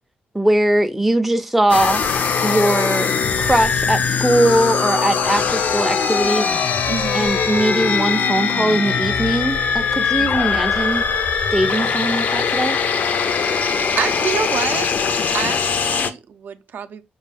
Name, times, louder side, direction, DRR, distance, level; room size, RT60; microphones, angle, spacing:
voice 1, 0.3-2.0 2.4-3.1 3.4-6.7 7.1-11.0 11.5-12.8, right 1 dB, 5° right, 0.4 m, -20 dB
sound 1, 1.7-16.1, left 6 dB, 60° left, 0.4 m, -21 dB
voice 2, 6.9-7.3 10.2-10.3 14.0-14.9 15.3-17.0, right 7 dB, 70° right, 0.4 m, -27 dB
5.2 x 2.3 x 3.3 m
wide cardioid pair, 155°, 3 cm